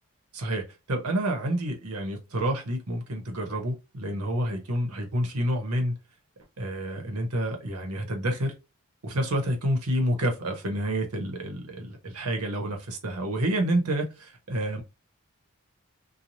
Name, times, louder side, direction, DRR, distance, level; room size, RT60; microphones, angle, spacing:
voice 1, 0.3-6.0 6.6-8.5 9.0-14.8, right 1 dB, 85° right, 1.0 m, -29 dB
3.1 x 2.3 x 2.6 m
head